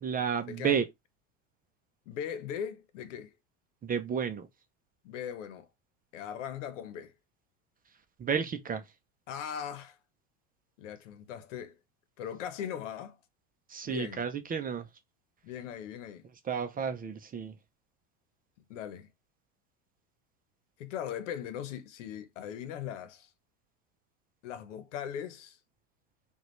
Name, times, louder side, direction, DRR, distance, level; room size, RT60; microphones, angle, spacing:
voice 1, 0.0-0.9 3.8-4.5 8.2-8.9 13.7-14.9 16.4-17.6, right 7 dB, 25° right, 0.6 m, -31 dB
voice 2, 2.1-3.3 5.0-5.7 6.1-7.1 9.3-10.0 10.8-11.8 12.2-13.2 13.8-14.2 15.4-16.2 18.7-19.1 20.8-23.3 24.4-25.6, left 9 dB, 85° left, 1.0 m, -39 dB
5.0 x 2.5 x 3.1 m
supercardioid pair, 115°, 36 cm